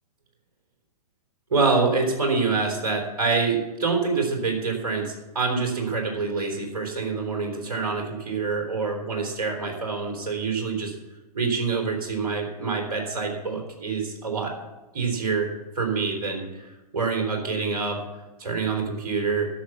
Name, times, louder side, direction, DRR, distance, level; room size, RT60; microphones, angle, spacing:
voice 1, 1.5-10.9 11.3-14.5 14.9-18.0 18.4-19.5, right 4 dB, 65° right, 1 dB, 3.5 m, -26 dB
11.5 x 7.1 x 8.0 m, 1.1 s
figure-of-eight pair, 115°, 20 cm